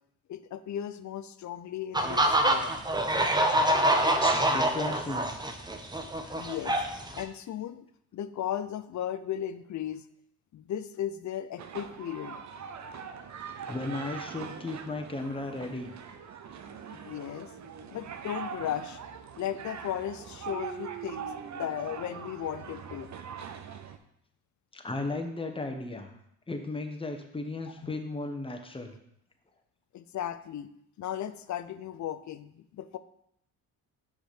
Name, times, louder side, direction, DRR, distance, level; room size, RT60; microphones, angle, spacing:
voice 1, 0.3-2.7 6.3-6.8 7.1-7.9 8.1-10.0 10.5-12.6 16.9-17.5 17.9-19.0 19.4-21.3 21.6-23.1 27.8-27.9 29.9-30.7 31.0-33.0, left 10 dB, 50° left, 13 dB, 0.6 m, -36 dB
sound 1, 1.9-7.2, right 1 dB, 10° right, 0.8 m, -25 dB
voice 2, 4.0-5.3 13.7-15.9 24.7-26.1 26.5-28.9, left 2 dB, 15° left, 4 dB, 1.1 m, -35 dB
sound 2, 11.6-24.0, right 6 dB, 45° right, 0.8 m, -42 dB
6.3 x 5.0 x 5.0 m, 0.74 s
cardioid pair, 75°, 38 cm